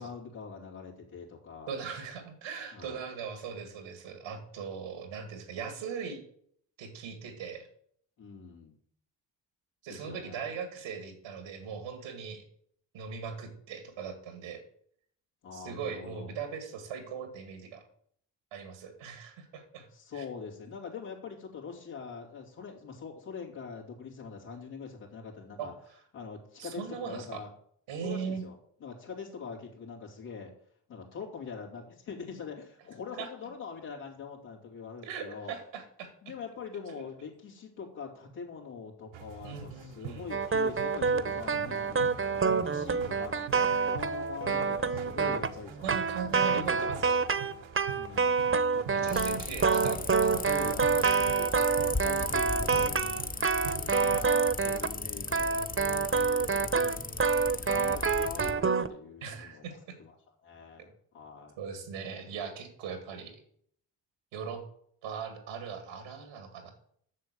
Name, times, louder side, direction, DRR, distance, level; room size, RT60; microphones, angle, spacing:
voice 1, 0.0-1.7 2.7-3.0 8.2-8.7 9.9-10.5 15.4-16.3 19.9-25.7 26.1-27.5 28.0-30.5 30.9-35.5 36.2-42.1 42.6-43.4 43.9-46.0 46.5-47.3 48.0-49.3 49.7-53.3 53.5-56.6 57.4-60.1 60.4-61.6, left 5 dB, 85° left, -3 dB, 3.0 m, -44 dB
voice 2, 1.7-6.2 6.8-7.7 9.8-12.4 12.9-14.6 15.5-17.8 18.5-19.9 20.1-20.2 25.6-25.7 26.6-27.4 27.9-28.4 33.2-33.3 35.0-36.3 36.9-37.0 39.4-40.2 45.8-47.2 48.9-50.0 54.1-54.4 55.5-55.7 56.1-56.3 59.2-60.0 61.6-63.4 64.3-64.6 65.0-66.7, right 6 dB, 90° right, 7 dB, 2.0 m, -39 dB
sound 1, 39.1-54.2, right 6 dB, 70° right, 1.1 m, -45 dB
sound 2, 40.3-55.0 55.3-58.9, right 5 dB, 25° right, 0.9 m, -27 dB
sound 3, 49.1-58.5, left 3 dB, 20° left, 0.8 m, -37 dB
7.5 x 6.6 x 7.7 m, 0.64 s
hypercardioid pair, 40°, 47 cm